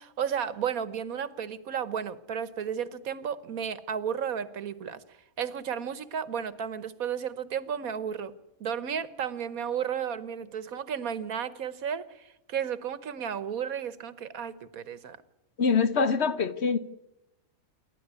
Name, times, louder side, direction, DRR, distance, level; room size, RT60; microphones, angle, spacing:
voice 1, 0.0-5.0 5.4-8.3 8.6-15.2, right 8 dB, 85° right, 1.5 m, -33 dB
voice 2, 15.6-16.8, left 5 dB, 55° left, 1.2 m, -24 dB
28.5 x 12.0 x 9.5 m
omnidirectional pair, 1.4 m